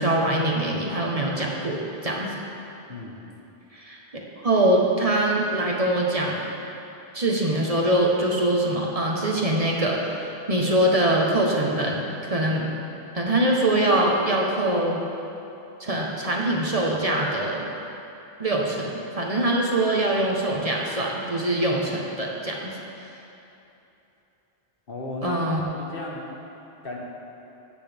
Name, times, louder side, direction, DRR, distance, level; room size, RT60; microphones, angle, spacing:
voice 1, 0.0-2.4 3.7-4.0 4.4-6.4 7.1-12.0 12.3-12.7 13.1-15.0 15.8-17.6 18.4-22.7 25.2-25.6, right 1 dB, 35° right, -2 dB, 1.1 m, -23 dB
voice 2, 2.9-3.2 24.9-25.4 25.8-26.2 26.8-27.0, left 2 dB, 60° left, -2 dB, 1.5 m, -34 dB
16.0 x 8.2 x 3.5 m, 3.0 s
omnidirectional pair, 1.0 m